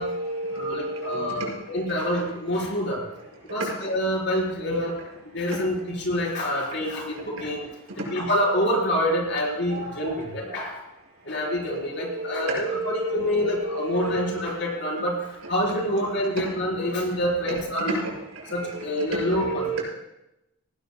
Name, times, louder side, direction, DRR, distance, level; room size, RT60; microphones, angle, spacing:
voice 1, 0.0-1.6 5.5-5.6 9.7-10.6 11.5-14.6 17.5-17.6 18.0-19.8, right 1 dB, 80° right, -3 dB, 5.9 m, -32 dB
voice 2, 0.5-3.0 3.5-4.9 5.3-7.7 8.0-10.8 11.3-15.2 15.5-18.0 18.5-19.8, equal, 55° left, -2 dB, 4.1 m, -27 dB
18.0 x 18.0 x 2.2 m, 0.92 s
head